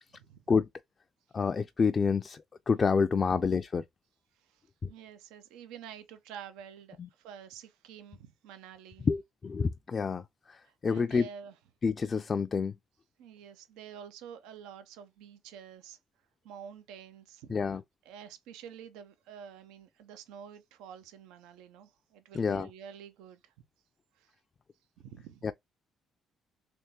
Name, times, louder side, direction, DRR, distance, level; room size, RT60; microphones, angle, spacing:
voice 1, 0.1-0.4 4.4-9.1 10.6-11.6 13.2-16.0 16.4-17.8 18.0-23.5 24.1-24.3 25.0-25.5, right 8 dB, 85° right, 0.5 m, -49 dB
voice 2, 1.3-3.8 4.8-4.9 7.0-7.1 9.0-10.2 10.5-11.3 11.8-12.7 17.5-17.8 22.3-22.7 25.4-25.5, left 5 dB, 40° left, 0.3 m, -28 dB
3.5 x 2.9 x 2.8 m
supercardioid pair, 60°, 0 cm